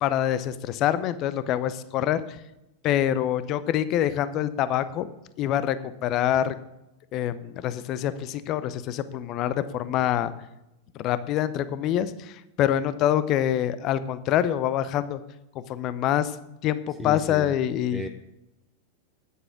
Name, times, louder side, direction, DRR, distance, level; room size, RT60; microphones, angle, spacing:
voice 1, 0.0-2.2 2.8-5.1 5.4-5.8 6.0-6.5 7.1-10.3 10.9-15.2 15.5-16.3 16.6-18.1, left 11 dB, 35° left, 14 dB, 0.7 m, -25 dB
voice 2, 17.0-17.5 17.9-18.1, equal, ahead, 3 dB, 0.7 m, -34 dB
9.9 x 8.4 x 6.0 m, 0.92 s
figure-of-eight pair, 90°, 0 cm